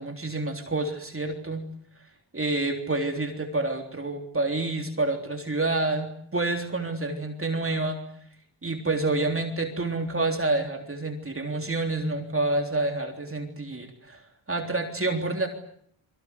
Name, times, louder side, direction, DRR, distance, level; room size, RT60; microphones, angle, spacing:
voice 1, 0.0-1.6 2.3-8.0 8.6-14.2 14.5-15.5, right 2 dB, 25° right, 4 dB, 3.5 m, -28 dB
28.0 x 24.0 x 8.3 m, 0.67 s
wide cardioid pair, 95°, 50 cm